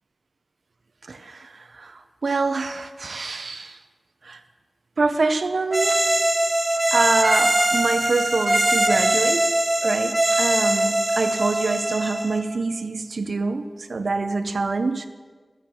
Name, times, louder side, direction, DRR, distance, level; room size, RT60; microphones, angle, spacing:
voice 1, 1.1-3.8 4.2-4.4 5.0-6.1 6.9-15.1, right 3 dB, 75° right, 9 dB, 0.6 m, -26 dB
sound 1, 5.7-12.4, right 1 dB, 30° right, 1.9 m, -21 dB
11.5 x 8.4 x 7.3 m, 1.5 s
wide cardioid pair, 60°, 0 cm